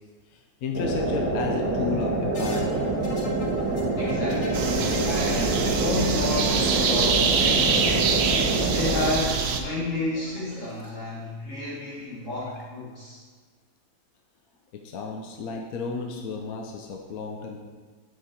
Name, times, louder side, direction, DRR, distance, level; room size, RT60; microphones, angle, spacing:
voice 1, 0.6-2.8 14.8-17.6, left 4 dB, 70° left, 2 dB, 1.1 m, -32 dB
sound 1, 0.7-9.1, right 2 dB, 10° right, 0.9 m, -26 dB
sound 2, 2.3-10.9 12.0-12.6, left 1 dB, 25° left, 1.1 m, -40 dB
voice 2, 4.0-4.8 5.0-8.1 8.6-13.2, left 2 dB, 55° left, -7 dB, 1.8 m, -31 dB
sound 3, 4.5-9.6, right 5 dB, 60° right, 0.7 m, -25 dB
7.7 x 5.6 x 4.3 m, 1.4 s
omnidirectional pair, 1.7 m